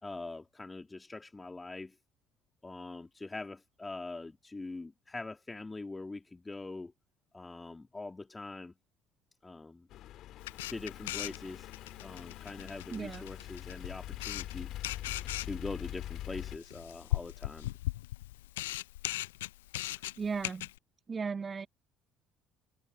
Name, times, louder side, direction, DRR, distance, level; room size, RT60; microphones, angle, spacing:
voice 1, 0.0-2.0 2.6-6.9 7.3-8.7 9.4-9.9 10.7-11.7 12.0-14.7 15.4-17.7, left 3 dB, 20° left, 2.5 m, -43 dB
sound 1, 9.9-16.6, left 13 dB, 55° left, 2.0 m, -44 dB
Camera, 10.4-20.8, left 16 dB, 75° left, 0.4 m, -39 dB
voice 2, 12.9-13.3 19.9-20.7 21.1-21.7, right 5 dB, 30° right, 1.5 m, -36 dB
figure-of-eight pair, 55°, 0 cm